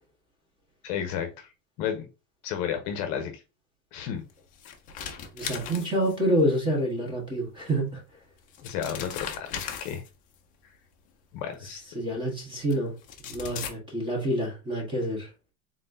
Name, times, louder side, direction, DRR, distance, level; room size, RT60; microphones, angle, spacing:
voice 1, 0.8-1.5 1.8-2.1 2.4-3.4 3.9-4.2 8.6-10.0 11.3-11.8, left 8 dB, 45° left, 0.8 m, -32 dB
sound 1, 4.3-6.4 7.8-7.9 8.4-10.3 11.5-11.6 12.7-12.8 13.0-13.7, left 8 dB, 20° left, 0.3 m, -38 dB
voice 2, 5.3-8.0 11.6-12.9 13.2-15.3, right 1 dB, 10° right, 1.2 m, -28 dB
4.2 x 3.7 x 2.6 m
cardioid pair, 170°, 40 cm